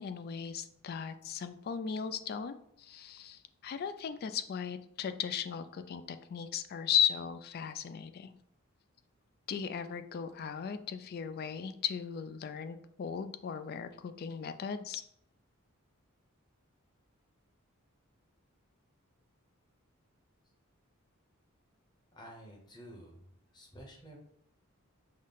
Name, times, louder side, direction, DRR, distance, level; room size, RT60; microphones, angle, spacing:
voice 1, 0.0-8.4 9.5-15.0, left 7 dB, 45° left, 10 dB, 0.3 m, -36 dB
voice 2, 22.1-24.2, equal, 20° left, 0 dB, 0.9 m, -51 dB
5.4 x 2.1 x 3.8 m, 0.71 s
head